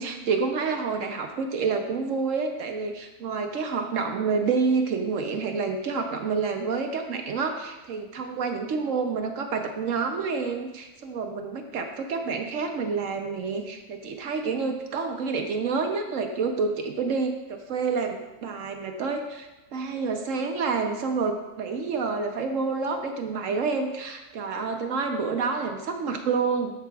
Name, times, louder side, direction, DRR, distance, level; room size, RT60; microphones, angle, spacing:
voice 1, 0.0-26.7, right 4 dB, 65° right, 5 dB, 1.0 m, -28 dB
13.5 x 5.7 x 2.3 m, 1.1 s
omnidirectional pair, 1.6 m